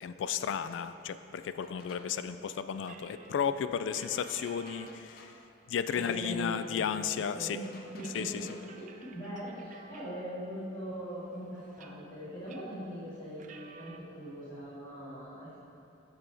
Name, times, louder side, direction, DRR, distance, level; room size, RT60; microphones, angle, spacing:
voice 1, 0.0-5.3 5.7-7.6 8.1-8.5, left 7 dB, 80° left, 12 dB, 0.3 m, -33 dB
sound 1, 1.6-2.2 3.9-5.5 7.6-8.8, left 3 dB, 55° left, 0.7 m, -54 dB
sound 2, 2.8-5.0 5.4-5.5 5.9-6.6 7.0-8.1 8.4-10.5 11.0-12.1 12.5-12.8 13.3-14.0, right 5 dB, 45° right, 0.4 m, -53 dB
voice 2, 5.9-8.5 8.8-8.9 9.1-15.6, right 1 dB, 20° left, -13 dB, 1.7 m, -41 dB
8.2 x 5.1 x 4.4 m, 2.7 s
head